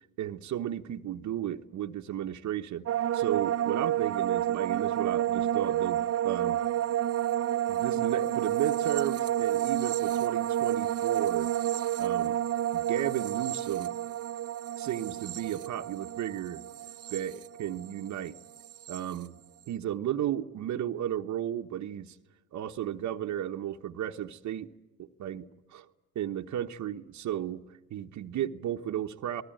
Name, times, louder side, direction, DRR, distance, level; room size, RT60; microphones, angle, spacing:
voice 1, 0.2-2.9 3.1-6.6 7.7-11.5 12.0-12.4 12.7-13.9 14.8-16.6 17.1-18.4 18.9-19.4 19.7-22.2 22.5-24.7 25.0-25.9 26.1-27.6 27.9-29.4, right 11 dB, 70° right, 4 dB, 1.1 m, -34 dB
sound 1, 2.9-18.1 18.3-19.0, right 12 dB, 55° right, 0.9 m, -30 dB
27.5 x 19.5 x 9.0 m, 1.1 s
cardioid pair, 90°, 30 cm